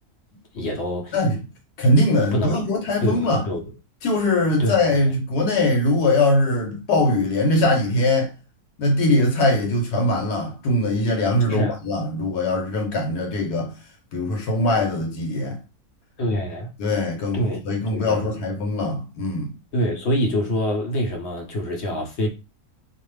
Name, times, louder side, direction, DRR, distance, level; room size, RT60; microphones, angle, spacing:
voice 1, 0.5-1.2 2.3-2.6 3.0-3.6 4.6-4.7 11.5-11.8 16.2-16.7 17.3-18.3 19.7-22.3, equal, 55° left, 0.8 m, -25 dB
voice 2, 1.8-3.5 4.0-8.3 8.8-13.8 14.1-15.6 16.8-19.5, left 1 dB, 75° left, 1.2 m, -21 dB
2.5 x 2.4 x 3.1 m
omnidirectional pair, 1.7 m